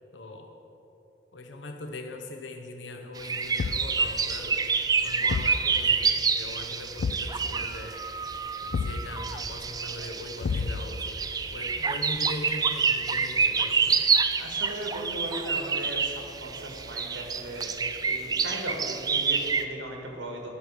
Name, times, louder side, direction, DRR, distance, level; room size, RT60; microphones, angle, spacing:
voice 1, 0.1-0.6 1.3-4.6 5.0-8.0 8.6-11.2 11.5-14.1, left 2 dB, 75° left, 4 dB, 0.8 m, -40 dB
sound 1, 3.2-19.6, right 5 dB, 20° right, 0.3 m, -28 dB
Thump thud, 3.6-4.0 5.3-5.6 7.0-7.3 8.7-9.1 10.4-11.0, left 4 dB, 55° left, 0.4 m, -30 dB
voice 2, 14.4-20.5, right 1 dB, 80° right, 0 dB, 1.8 m, -37 dB
11.5 x 6.2 x 6.5 m, 3.0 s
head